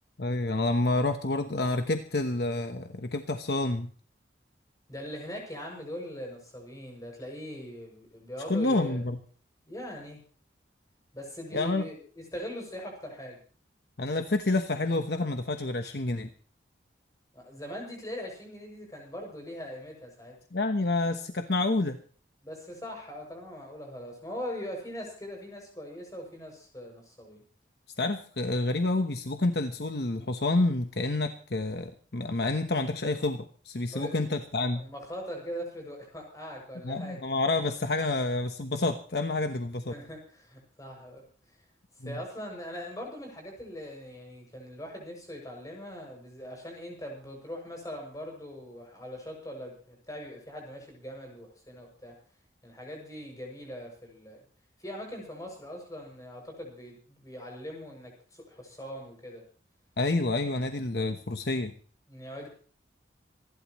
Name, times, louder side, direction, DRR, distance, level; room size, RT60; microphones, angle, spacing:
voice 1, 0.2-3.9 8.5-9.2 11.5-11.9 14.0-16.3 20.5-22.0 28.0-34.8 36.8-39.9 42.0-42.2 60.0-61.7, left 2 dB, 60° left, 6 dB, 1.1 m, -28 dB
voice 2, 4.9-9.0 9.7-10.2 11.1-13.4 17.3-20.3 22.4-27.4 33.9-34.2 34.7-37.2 39.9-41.2 42.0-52.1 52.6-54.4 54.8-59.4 62.1-62.5, equal, 20° left, 1 dB, 6.9 m, -41 dB
27.0 x 12.0 x 3.1 m, 0.43 s
head